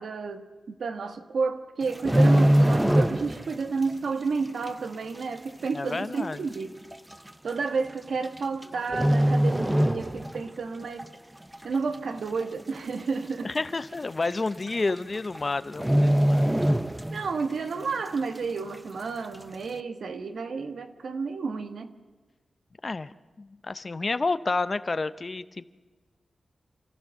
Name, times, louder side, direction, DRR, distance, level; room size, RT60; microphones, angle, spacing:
voice 1, 0.0-6.8 7.4-11.1 11.6-13.5 17.1-21.9, right 4 dB, 80° right, 8 dB, 1.5 m, -31 dB
sound 1, 1.8-3.6 3.8-4.1 4.7-4.8 5.7-5.8 6.0-6.1 6.9-7.1 8.2-8.6 8.9-10.5 10.8-11.0 11.5-12.1 12.4-12.5 12.7-12.8 13.2-13.3 14.3-14.4 14.7-15.0 15.2-15.4 15.8-17.4 17.8-17.9, equal, 10° right, 0.5 m, -22 dB
voice 2, 5.7-6.4 13.4-16.5 22.8-25.7, left 3 dB, 35° left, 14 dB, 0.6 m, -30 dB
27.5 x 14.5 x 7.0 m, 1.3 s
wide cardioid pair, 155°, 0 cm